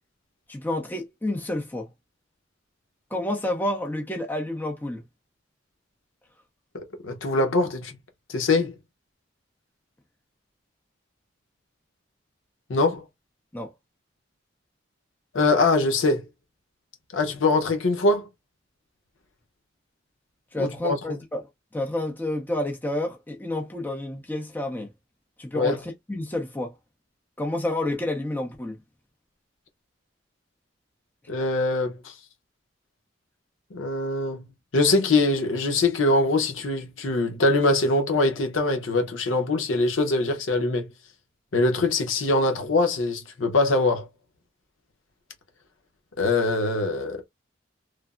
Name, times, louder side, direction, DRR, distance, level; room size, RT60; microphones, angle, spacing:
voice 1, 0.5-1.9 3.1-5.0 13.5-13.7 20.5-24.9 25.4-26.7 27.4-28.8, left 1 dB, 10° left, 0.6 m, -29 dB
voice 2, 6.7-8.0 8.3-8.7 12.7-13.0 15.3-16.2 17.1-18.3 20.6-21.0 25.5-25.8 31.3-32.1 33.7-34.4 34.7-40.9 41.5-44.1 46.2-47.2, left 2 dB, 85° left, 0.7 m, -23 dB
3.3 x 2.0 x 2.4 m
head